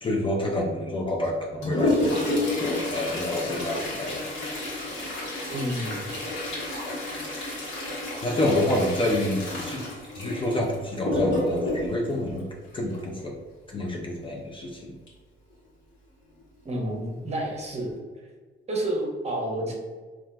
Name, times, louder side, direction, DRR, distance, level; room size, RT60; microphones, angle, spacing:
voice 1, 0.0-4.2 8.2-9.9 10.2-12.5 12.7-13.4 13.7-15.0, left 1 dB, 25° left, -1 dB, 0.4 m, -28 dB
Toilet flush, 1.2-13.2 15.1-15.2 15.5-15.6 16.4-16.5 17.1-17.4 17.8-18.0, left 1 dB, 65° left, 1.1 m, -30 dB
voice 2, 5.5-6.0 16.6-18.0 18.7-19.7, right 1 dB, 35° right, -1 dB, 0.8 m, -29 dB
3.7 x 2.4 x 2.2 m, 1.4 s
cardioid pair, 90°, 20 cm